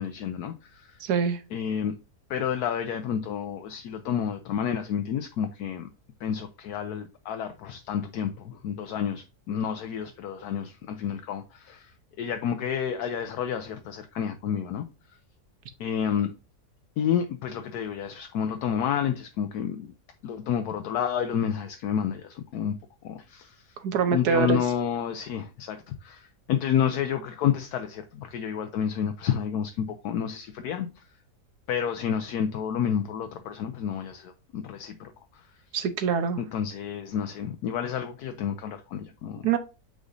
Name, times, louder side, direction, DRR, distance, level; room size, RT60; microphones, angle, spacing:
voice 1, 0.0-1.0 1.5-1.9 2.3-5.9 6.2-11.9 12.2-14.9 15.8-16.3 17.0-19.9 20.2-22.7 23.0-23.6 24.1-30.9 31.7-35.4 36.4-39.6, left 8 dB, 70° left, 1.1 m, -30 dB
voice 2, 1.0-1.4 23.8-24.6 35.7-36.4 39.4-39.6, right 6 dB, 75° right, 1.4 m, -24 dB
8.3 x 5.0 x 2.6 m
omnidirectional pair, 1.8 m